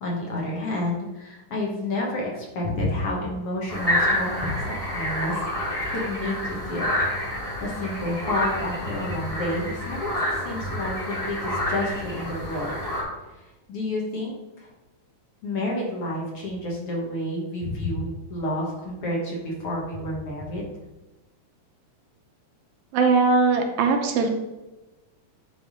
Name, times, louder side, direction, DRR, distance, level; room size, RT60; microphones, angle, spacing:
voice 1, 0.0-6.9 7.6-10.1 10.4-12.8 13.7-14.7 15.4-20.7, left 1 dB, 55° left, -2 dB, 1.9 m, -30 dB
sound 1, 3.7-13.0, left 1 dB, 15° left, 1.6 m, -28 dB
voice 2, 22.9-24.3, right 4 dB, 75° right, 4 dB, 2.1 m, -20 dB
9.9 x 3.7 x 5.0 m, 1.1 s
omnidirectional pair, 3.6 m